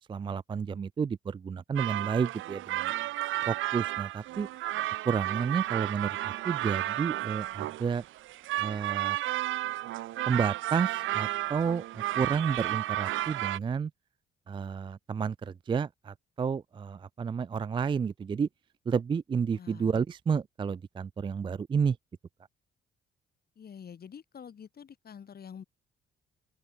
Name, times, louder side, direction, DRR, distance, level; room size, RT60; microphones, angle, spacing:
voice 1, 0.1-2.9 3.5-4.5 5.1-8.0 8.6-9.2 10.3-13.9 14.5-18.5 18.9-22.0, right 6 dB, 25° right, 0.3 m, -31 dB
sound 1, 1.8-13.6, right 15 dB, 85° right, 1.1 m, -32 dB
voice 2, 19.5-20.0 23.5-25.6, left 7 dB, 50° left, 5.1 m, -47 dB
cardioid pair, 90°, 20 cm